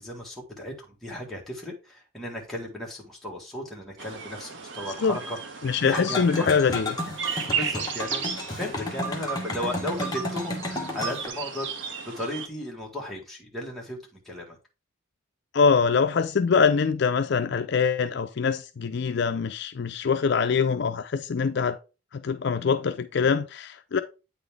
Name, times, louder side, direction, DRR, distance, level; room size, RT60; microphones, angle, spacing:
voice 1, 0.0-5.4 5.8-6.8 7.6-14.6, left 1 dB, ahead, 1.6 m, -35 dB
sound 1, 4.0-12.5, right 6 dB, 60° right, 0.7 m, -35 dB
voice 2, 5.6-6.9 15.5-21.8 22.1-24.0, left 5 dB, 55° left, 0.4 m, -24 dB
sound 2, 5.9-11.3, left 1 dB, 20° left, 1.1 m, -32 dB
8.6 x 4.0 x 3.5 m
head